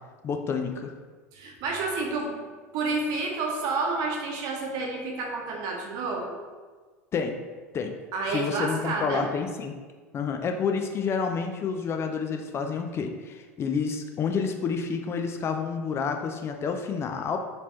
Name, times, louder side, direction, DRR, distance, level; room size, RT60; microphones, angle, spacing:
voice 1, 0.2-0.9 7.1-7.3 7.7-7.9 8.3-9.8 10.1-17.4, left 5 dB, 35° left, 5 dB, 0.4 m, -29 dB
voice 2, 1.3-2.4 2.7-6.4 8.1-9.3, right 3 dB, 55° right, 0 dB, 0.9 m, -29 dB
4.1 x 2.9 x 3.1 m, 1.4 s
hypercardioid pair, 80°, 8 cm